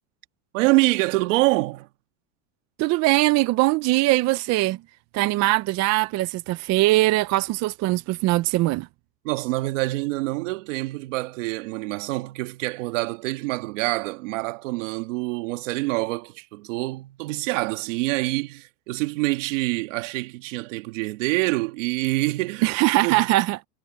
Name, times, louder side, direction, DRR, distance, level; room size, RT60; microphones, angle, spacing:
voice 1, 0.5-1.9 9.2-22.7 23.0-23.2, right 22 dB, 80° right, 1.7 m, -26 dB
voice 2, 2.8-4.8 5.1-8.9 22.6-23.6, right 19 dB, 45° right, 0.7 m, -21 dB
supercardioid pair, 135°, 37 cm